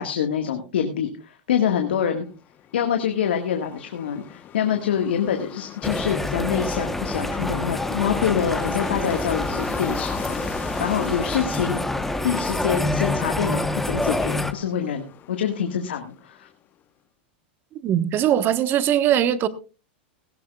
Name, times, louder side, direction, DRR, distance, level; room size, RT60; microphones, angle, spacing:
voice 1, 0.0-2.3 2.7-10.4 10.8-11.8 12.2-16.5, left 8 dB, 85° left, 5 dB, 1.7 m, -25 dB
sound 1, 2.2-16.5, left 10 dB, 35° left, 1.0 m, -40 dB
sound 2, 5.8-14.5, left 1 dB, 5° left, 1.0 m, -27 dB
voice 2, 17.8-19.5, right 10 dB, 35° right, 13 dB, 1.2 m, -20 dB
18.0 x 15.5 x 2.4 m, 0.32 s
hypercardioid pair, 115°, 6 cm